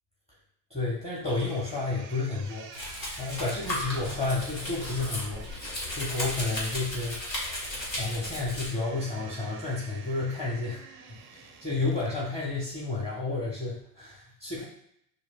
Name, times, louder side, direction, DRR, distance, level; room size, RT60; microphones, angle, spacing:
voice 1, 0.7-2.8 3.2-5.5 5.9-7.2 8.0-14.6, left 3 dB, 15° left, -5 dB, 1.2 m, -31 dB
sound 1, 1.3-12.3, right 6 dB, 25° right, 0.5 m, -49 dB
Domestic sounds home sounds, 2.7-8.7, left 1 dB, 80° left, 1.4 m, -35 dB
6.3 x 2.4 x 2.4 m, 0.72 s
figure-of-eight pair, 75°, 50 cm